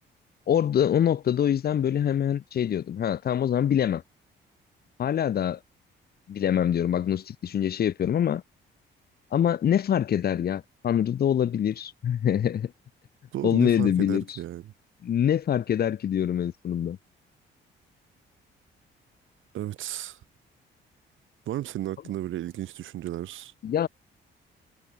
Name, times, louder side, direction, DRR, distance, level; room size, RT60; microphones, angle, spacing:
voice 1, 0.5-4.0 5.0-5.6 6.3-8.4 9.3-12.7 13.4-14.2 15.0-17.0 23.6-23.9, left 9 dB, 50° left, 0.9 m, -24 dB
voice 2, 13.3-14.7 19.5-20.2 21.5-23.5, right 13 dB, 80° right, 2.9 m, -33 dB
cardioid pair, 90°, 20 cm